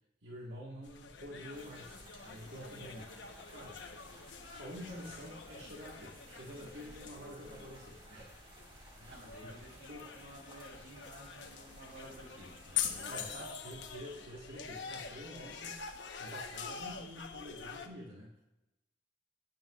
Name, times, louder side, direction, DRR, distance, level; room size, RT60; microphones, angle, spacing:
voice 1, 0.2-3.2 3.5-4.2 4.5-9.6 9.9-10.1 13.1-13.3 13.6-18.4, equal, 85° right, -4 dB, 1.6 m, -49 dB
sound 1, 0.8-17.9, left 7 dB, 85° left, 1.0 m, -45 dB
sound 2, 1.5-13.3, right 1 dB, 25° right, 2.1 m, -57 dB
voice 2, 9.1-13.5, right 1 dB, 60° right, -1 dB, 3.6 m, -52 dB
17.5 x 9.2 x 2.4 m, 0.96 s
head